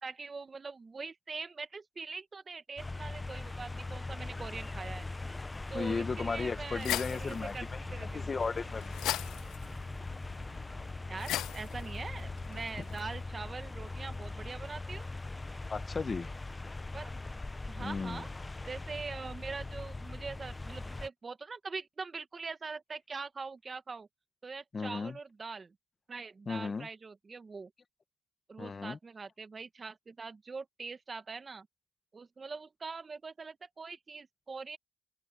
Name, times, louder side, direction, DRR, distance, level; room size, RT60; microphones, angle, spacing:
voice 1, 0.0-5.1 5.7-7.7 7.9-8.3 11.1-15.1 16.9-17.2 17.7-18.3 18.7-24.1 24.4-25.7 26.1-27.7 28.5-31.7 32.1-34.8, right 4 dB, 35° right, 1.6 m, -43 dB
sound 1, 2.8-21.1, left 2 dB, 20° left, 0.9 m, -41 dB
voice 2, 5.7-8.9 15.7-16.3 17.8-18.3 24.7-25.2 26.5-26.9 28.6-29.0, left 4 dB, 35° left, 1.4 m, -35 dB
sound 2, 6.4-13.2, left 14 dB, 90° left, 0.4 m, -40 dB
open air
cardioid pair, 90°, 0 cm